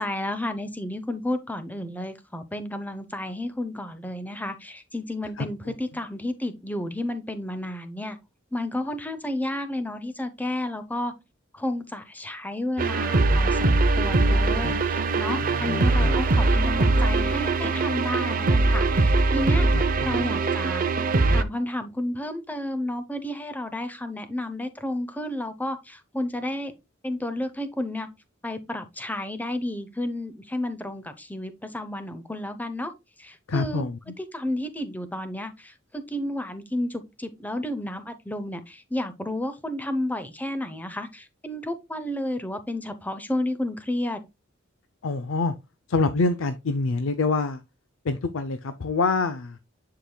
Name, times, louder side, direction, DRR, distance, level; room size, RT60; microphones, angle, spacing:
voice 1, 0.0-8.2 8.5-11.1 11.5-19.7 20.0-20.8 21.3-26.7 27.0-28.1 28.4-32.9 33.2-33.9 34.2-44.2, left 1 dB, 10° left, 0.7 m, -31 dB
voice 2, 5.4-5.7 15.4-16.1 19.7-20.3 33.5-34.0 45.0-45.5 45.9-47.6 48.0-49.6, left 3 dB, 75° left, 0.5 m, -26 dB
sound 1, 12.8-21.4, right 3 dB, 45° right, 0.6 m, -22 dB
10.0 x 4.8 x 2.2 m
head